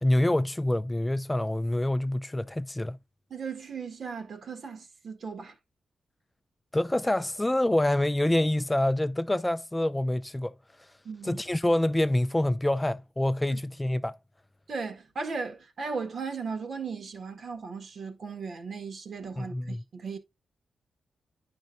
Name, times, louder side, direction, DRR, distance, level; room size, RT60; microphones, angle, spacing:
voice 1, 0.0-3.0 6.7-10.5 11.2-14.2 19.4-19.8, left 1 dB, 15° left, 0.4 m, -26 dB
voice 2, 3.3-5.5 11.0-11.4 13.5-13.6 14.7-20.2, right 5 dB, 65° right, 1.6 m, -37 dB
9.4 x 5.2 x 2.6 m
supercardioid pair, 50°, 0 cm